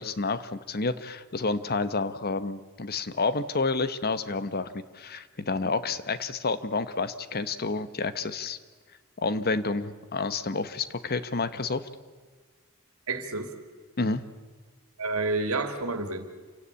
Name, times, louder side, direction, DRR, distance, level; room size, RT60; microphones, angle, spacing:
voice 1, 0.0-8.6 9.2-11.9 14.0-14.2, left 3 dB, 45° left, 13 dB, 1.0 m, -29 dB
voice 2, 13.1-13.5 15.0-16.4, right 3 dB, 75° right, 8 dB, 2.5 m, -29 dB
27.5 x 17.0 x 8.3 m, 1.5 s
head